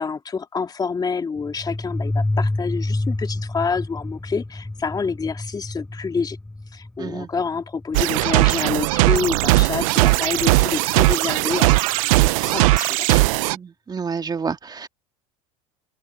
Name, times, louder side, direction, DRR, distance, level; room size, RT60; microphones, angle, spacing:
voice 1, 0.0-6.4 6.7-13.2, left 5 dB, 20° left, 2.5 m, -28 dB
sound 1, 1.4-9.8, left 2 dB, 5° left, 0.4 m, -29 dB
voice 2, 7.0-7.3 13.5-14.9, right 5 dB, 20° right, 2.3 m, -29 dB
sound 2, 7.9-13.6, right 22 dB, 70° right, 0.8 m, -18 dB
hypercardioid pair, 95°, 18 cm